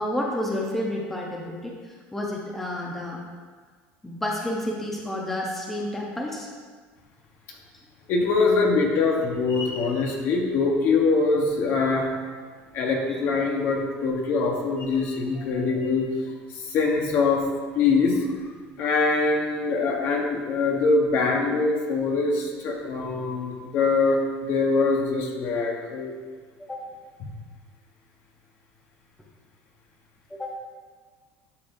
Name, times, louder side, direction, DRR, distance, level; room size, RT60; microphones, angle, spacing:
voice 1, 0.0-1.7 2.1-3.2 4.0-6.5 13.1-13.2 26.6-26.8 30.3-30.6, left 1 dB, 5° left, -2 dB, 0.8 m, -30 dB
voice 2, 8.1-12.1 12.7-16.1 16.7-17.5 17.7-18.2 18.8-26.1, left 4 dB, 55° left, 0 dB, 1.3 m, -23 dB
10.0 x 6.3 x 2.7 m, 1.5 s
cardioid pair, 145°, 5 cm